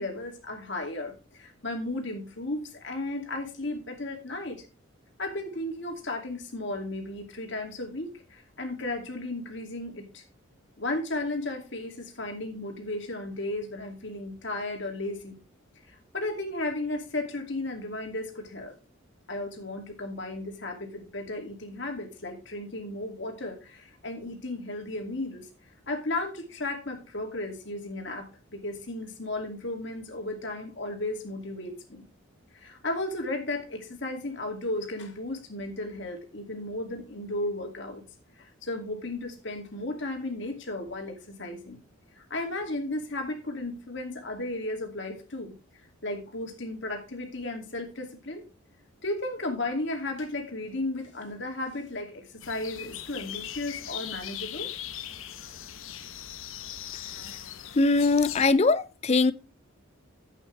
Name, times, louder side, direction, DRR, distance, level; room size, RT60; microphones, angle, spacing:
voice 1, 0.0-4.6 5.2-10.2 10.8-15.4 16.1-18.7 19.3-25.5 25.9-32.0 32.5-38.0 38.4-41.8 42.2-45.5 46.0-48.4 49.0-54.7, left 2 dB, 55° left, 2.6 m, -34 dB
sound 1, 52.4-58.5, left 11 dB, 75° left, 0.8 m, -39 dB
voice 2, 57.7-59.3, left 3 dB, 30° left, 0.4 m, -21 dB
11.0 x 8.4 x 3.3 m
head